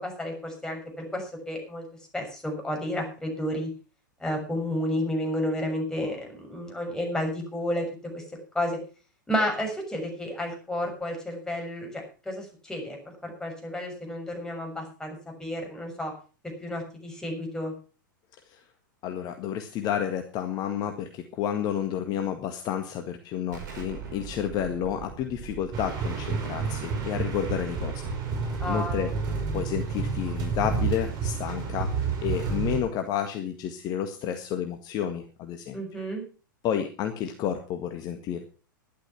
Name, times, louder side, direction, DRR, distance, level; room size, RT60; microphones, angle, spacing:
voice 1, 0.0-1.8 2.1-3.7 4.2-7.9 8.1-8.2 8.5-8.8 9.3-16.1 16.6-17.8 28.6-29.1 35.7-36.2, left 1 dB, 5° left, 1 dB, 6.5 m, -31 dB
voice 2, 19.0-28.1 28.7-29.1 29.5-31.9 32.2-35.8 36.6-38.5, left 9 dB, 40° left, 6 dB, 1.8 m, -30 dB
Explosion, 23.5-29.0, right 6 dB, 60° right, 5.8 m, -44 dB
sound 1, 25.7-32.8, right 5 dB, 35° right, 5.3 m, -30 dB
12.5 x 11.5 x 5.9 m, 0.36 s
figure-of-eight pair, 100°, 11 cm